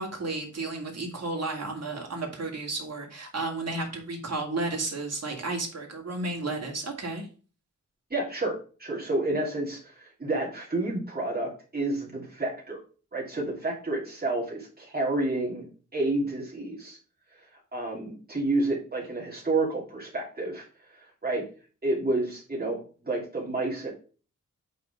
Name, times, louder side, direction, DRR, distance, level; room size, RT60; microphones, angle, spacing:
voice 1, 0.0-7.3, right 2 dB, 55° right, 0 dB, 2.5 m, -32 dB
voice 2, 8.1-12.8 13.1-17.0 17.3-20.6 20.9-21.4 21.8-23.9, right 2 dB, 30° right, -3 dB, 2.6 m, -30 dB
8.2 x 4.0 x 4.9 m, 0.37 s
wide cardioid pair, 155°, 30 cm